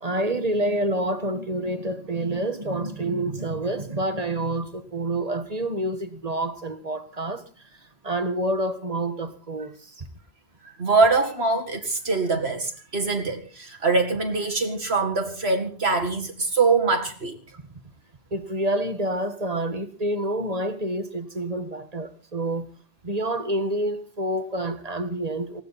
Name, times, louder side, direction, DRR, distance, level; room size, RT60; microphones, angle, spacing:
voice 1, 0.0-7.7 8.0-10.0 18.3-22.7 23.0-25.6, right 1 dB, 40° right, 1.6 m, -28 dB
voice 2, 10.6-17.3, right 3 dB, 80° right, 2.3 m, -23 dB
19.5 x 16.5 x 4.2 m
omnidirectional pair, 1.0 m